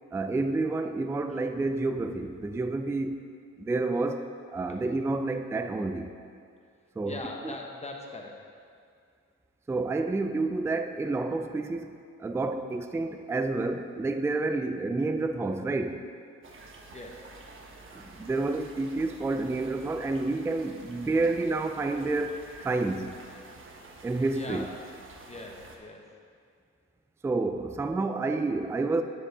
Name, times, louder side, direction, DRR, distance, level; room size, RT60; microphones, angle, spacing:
voice 1, 0.1-3.2 3.6-6.1 7.0-7.2 7.4-7.5 9.7-16.0 17.9-23.2 24.0-24.6 27.2-29.0, right 3 dB, 10° right, 8 dB, 0.3 m, -29 dB
voice 2, 7.0-8.5 16.9-17.3 24.3-24.7 25.3-26.0, left 2 dB, 20° left, 1 dB, 1.2 m, -41 dB
sound 1, 16.4-25.8, right 3 dB, 40° right, 1.1 m, -49 dB
9.7 x 7.2 x 3.5 m, 2.2 s
cardioid pair, 90°, 30 cm